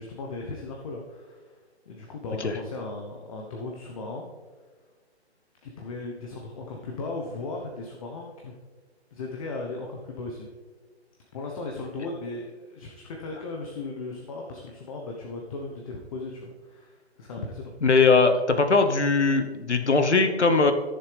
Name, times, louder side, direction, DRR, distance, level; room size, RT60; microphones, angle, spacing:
voice 1, 0.0-1.6 1.9-4.3 5.6-8.5 9.1-10.5 11.3-17.7, left 3 dB, 30° left, 1 dB, 1.0 m, -37 dB
voice 2, 17.8-20.7, left 4 dB, 90° left, 8 dB, 1.1 m, -20 dB
15.5 x 6.9 x 3.4 m, 1.4 s
figure-of-eight pair, 145°, 33 cm